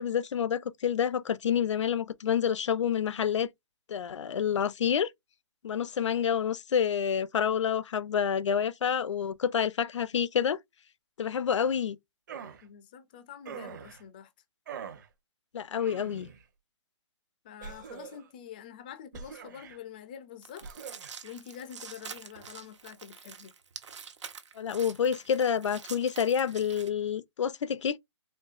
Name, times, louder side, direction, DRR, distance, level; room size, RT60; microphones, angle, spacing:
voice 1, 0.0-3.5 3.9-5.1 5.6-10.6 11.2-12.0 15.5-16.3 24.6-28.0, left 8 dB, 80° left, 0.5 m, -28 dB
sound 1, 12.3-12.6 13.4-14.0 14.7-15.1 15.8-16.4 17.6-18.3 19.1-19.8 20.6-21.1, right 7 dB, 40° right, 0.7 m, -43 dB
voice 2, 12.6-14.3 17.4-23.5, left 9 dB, 20° left, 0.3 m, -46 dB
sound 2, 20.4-26.9, right 6 dB, 80° right, 1.0 m, -46 dB
4.4 x 2.6 x 2.4 m
hypercardioid pair, 170°, 15 cm